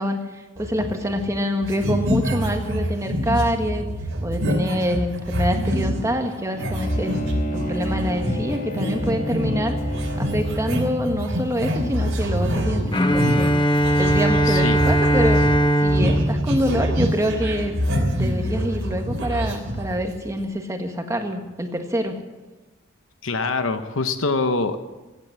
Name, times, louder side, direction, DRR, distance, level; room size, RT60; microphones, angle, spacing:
voice 1, 0.0-3.9 4.2-7.2 7.6-9.8 10.2-13.5 14.0-15.4 15.8-17.7 18.2-22.2, equal, 15° right, 4 dB, 1.5 m, -26 dB
sound 1, 0.6-1.4 1.6-6.1 6.6-20.3, equal, 75° right, 3.2 m, -25 dB
Bowed string instrument, 6.5-11.2, equal, 40° left, 1.9 m, -31 dB
Bowed string instrument 2, 12.9-17.8, right 1 dB, 20° left, 1.0 m, -20 dB
voice 2, 14.5-14.8 23.2-24.8, left 3 dB, 65° left, 9 dB, 1.0 m, -24 dB
16.0 x 9.1 x 7.6 m, 1.2 s
head